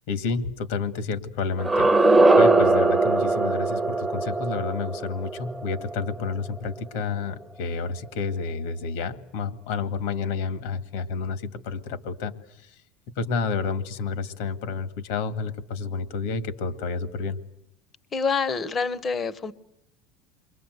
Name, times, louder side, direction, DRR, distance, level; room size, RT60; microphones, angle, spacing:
voice 1, 0.1-12.3 12.6-12.7 13.2-17.4, left 4 dB, 75° left, 11 dB, 2.0 m, -30 dB
sound 1, 1.5-6.5, right 2 dB, 5° right, 0.9 m, -21 dB
voice 2, 18.1-19.5, left 5 dB, 20° left, 17 dB, 1.0 m, -26 dB
29.0 x 23.5 x 8.0 m, 0.78 s
cardioid pair, 155°, 0 cm